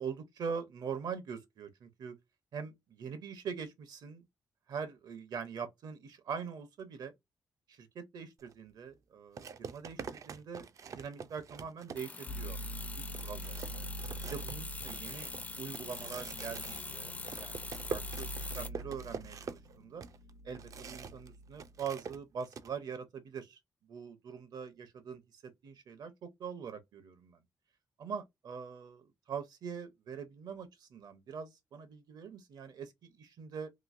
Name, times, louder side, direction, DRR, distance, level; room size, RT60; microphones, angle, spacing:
voice 1, 0.0-2.2 2.5-4.2 4.7-7.1 7.7-10.7 10.9-12.6 13.2-13.9 14.2-15.3 15.6-17.1 17.4-20.0 20.4-23.6 23.9-27.4 28.0-33.7, right 6 dB, 70° right, 0.8 m, -43 dB
sound 1, 8.4-8.5 9.4-12.4 12.8-12.9 13.1-21.3 21.5-22.7, right 6 dB, 50° right, 0.4 m, -45 dB
sound 2, 12.0-18.7, left 3 dB, 20° left, 0.4 m, -44 dB
sound 3, 12.3-21.8, right 1 dB, 65° left, 0.7 m, -45 dB
3.0 x 2.8 x 2.5 m
cardioid pair, 110°, 7 cm